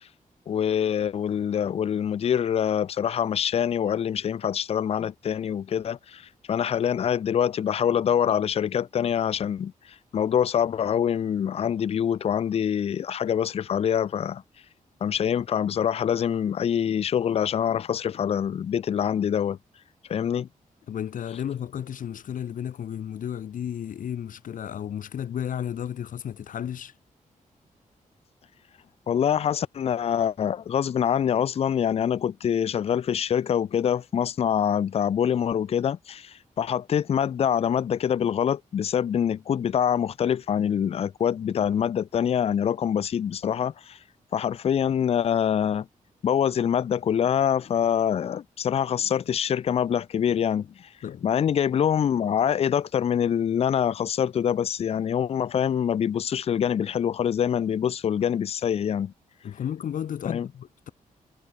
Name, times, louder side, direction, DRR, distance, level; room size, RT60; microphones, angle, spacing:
voice 1, 0.5-9.7 10.1-14.4 15.0-19.6 20.1-20.5 29.1-44.0 44.3-45.9 46.2-50.9 51.2-59.1 60.3-60.5, left 8 dB, 45° left, 0.4 m, -25 dB
voice 2, 20.9-26.9 51.0-51.3 59.4-60.9, left 9 dB, 75° left, 1.2 m, -33 dB
wide cardioid pair, 130°, 14 cm